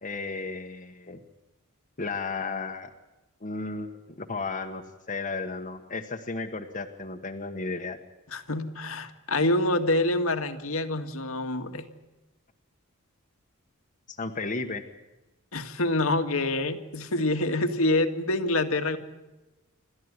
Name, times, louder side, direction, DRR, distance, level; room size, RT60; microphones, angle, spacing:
voice 1, 0.0-1.2 2.0-2.9 3.4-8.0 14.1-14.8, left 3 dB, 40° left, 2 dB, 1.4 m, -34 dB
voice 2, 8.3-11.9 15.5-19.0, left 2 dB, 70° left, 7 dB, 2.0 m, -26 dB
28.0 x 13.5 x 9.7 m, 1.1 s
head